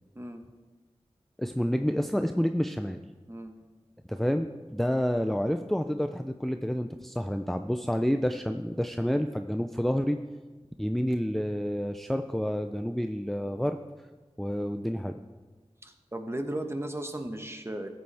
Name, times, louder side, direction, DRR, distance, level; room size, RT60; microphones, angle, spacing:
voice 1, 1.4-3.0 4.1-10.2 10.8-13.8 14.4-15.2, equal, ahead, 7 dB, 0.4 m, -29 dB
voice 2, 15.8-17.9, right 1 dB, 20° right, 5 dB, 1.1 m, -35 dB
14.0 x 7.8 x 3.4 m, 1.3 s
wide cardioid pair, 45°, 11 cm